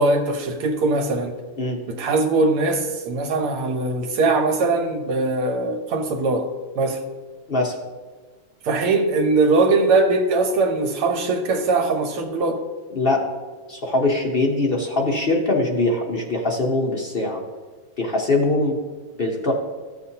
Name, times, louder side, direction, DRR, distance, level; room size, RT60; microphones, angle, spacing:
voice 1, 0.0-1.3 1.9-6.5 6.8-7.0 8.6-12.6, right 3 dB, 80° right, 4 dB, 1.9 m, -21 dB
voice 2, 12.9-13.2 13.7-17.4 18.0-18.8 19.2-19.5, left 2 dB, 60° left, -1 dB, 0.6 m, -22 dB
13.5 x 7.3 x 2.8 m, 1.3 s
omnidirectional pair, 2.4 m